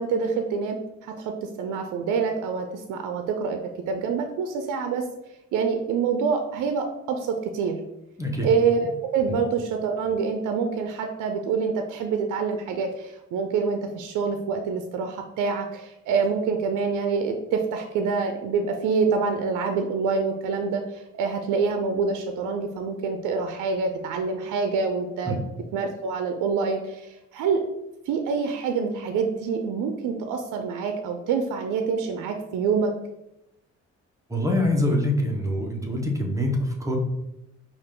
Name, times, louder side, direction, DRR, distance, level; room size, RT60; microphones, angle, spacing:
voice 1, 0.0-3.6 3.9-5.1 5.5-7.8 8.4-25.4 25.7-27.6 28.1-32.9, right 5 dB, 85° right, 5 dB, 0.5 m, -26 dB
voice 2, 34.3-37.0, left 1 dB, 10° right, 1 dB, 1.0 m, -24 dB
5.0 x 2.5 x 3.7 m, 0.87 s
cardioid pair, 90°, 30 cm